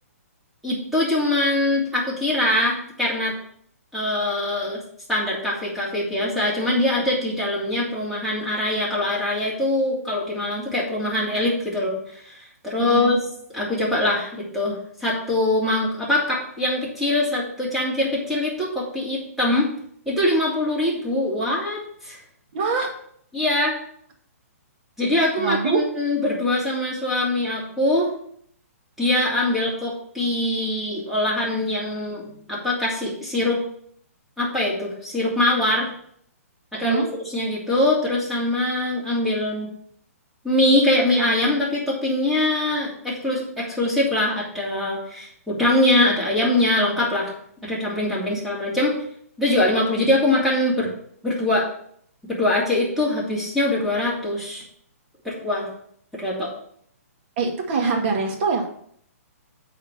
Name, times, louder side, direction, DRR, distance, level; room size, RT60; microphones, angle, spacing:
voice 1, 0.6-3.3 3.9-4.8 5.1-12.0 12.3-13.2 13.5-19.7 20.1-22.2 23.3-23.8 25.0-28.1 29.0-33.6 34.4-35.9 36.7-39.7 40.4-47.3 47.6-48.9 49.4-50.9 51.2-51.7 52.3-54.6 55.2-55.7 56.1-56.5, left 1 dB, ahead, -6 dB, 2.9 m, -23 dB
voice 2, 12.8-13.2 22.5-22.9 25.4-25.8 36.7-37.1 57.4-58.7, right 4 dB, 45° right, 2 dB, 2.0 m, -23 dB
8.4 x 4.4 x 6.1 m, 0.65 s
hypercardioid pair, 140°, 8 cm